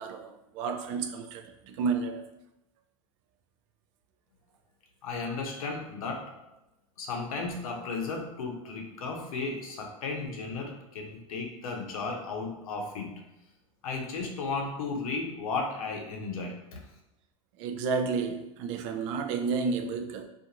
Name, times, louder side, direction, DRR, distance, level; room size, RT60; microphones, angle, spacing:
voice 1, 0.0-2.3 17.6-20.3, right 5 dB, 60° right, 0.4 m, -31 dB
voice 2, 5.0-6.5 7.0-13.1 13.8-16.8, left 4 dB, 85° left, 0.7 m, -34 dB
2.5 x 2.5 x 2.8 m
hypercardioid pair, 105°, 18 cm